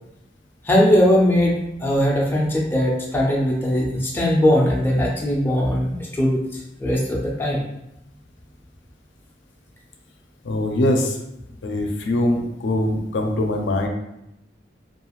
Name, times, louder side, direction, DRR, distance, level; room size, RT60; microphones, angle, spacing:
voice 1, 0.6-7.6, equal, 10° left, -4 dB, 0.4 m, -20 dB
voice 2, 10.4-11.2 11.6-13.9, left 1 dB, 75° left, 3 dB, 0.4 m, -22 dB
2.4 x 2.4 x 3.0 m, 0.85 s
head